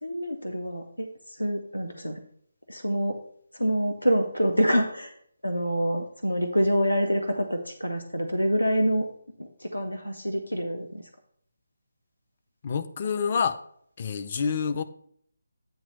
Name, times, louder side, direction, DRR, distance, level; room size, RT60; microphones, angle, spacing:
voice 1, 0.0-2.2 2.7-3.2 3.5-5.1 5.4-9.1 9.4-11.1, equal, 85° left, 4 dB, 0.7 m, -26 dB
voice 2, 12.6-13.6 14.0-14.8, left 6 dB, 35° left, 9 dB, 0.5 m, -27 dB
8.9 x 3.0 x 6.5 m, 0.65 s
figure-of-eight pair, 150°, 0 cm